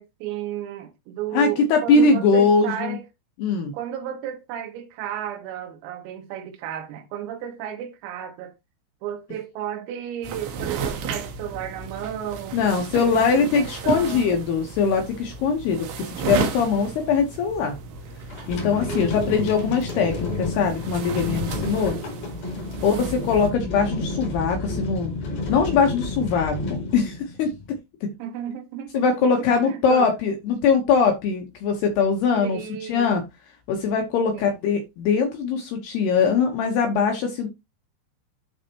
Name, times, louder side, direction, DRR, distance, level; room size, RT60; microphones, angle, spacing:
voice 1, 0.0-3.1 3.7-8.5 9.0-14.3 18.7-19.4 22.5-23.2 25.2-25.3 28.2-30.1 32.4-33.2 34.3-34.6, right 10 dB, 90° right, 4.0 m, -34 dB
voice 2, 1.3-3.0 3.4-3.7 12.5-17.7 18.5-22.0 22.8-25.1 25.5-27.5 28.9-32.6 32.9-33.2 33.7-37.5, left 5 dB, 75° left, 2.5 m, -21 dB
sound 1, 10.2-23.5, right 6 dB, 70° right, 2.5 m, -34 dB
sound 2, 18.3-27.7, left 2 dB, 50° left, 5.6 m, -31 dB
12.0 x 4.1 x 2.9 m
omnidirectional pair, 5.9 m